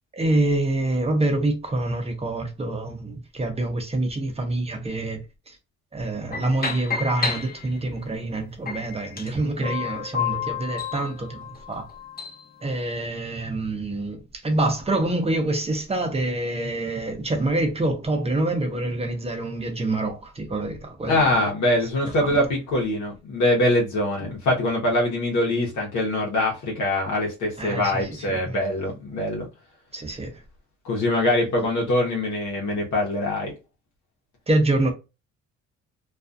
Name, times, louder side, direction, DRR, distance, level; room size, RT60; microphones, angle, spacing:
voice 1, 0.1-5.2 5.5-5.6 5.9-11.4 11.7-11.8 12.6-21.3 22.0-22.4 27.6-28.6 29.9-30.3 34.5-34.9, right 2 dB, 20° right, 0.7 m, -26 dB
sound 1, 6.3-8.0 8.7-12.4, left 6 dB, 30° left, 0.8 m, -31 dB
voice 2, 21.1-29.5 30.8-33.5, left 1 dB, 70° left, 0.9 m, -23 dB
2.4 x 2.3 x 2.5 m
cardioid pair, 90°, 30 cm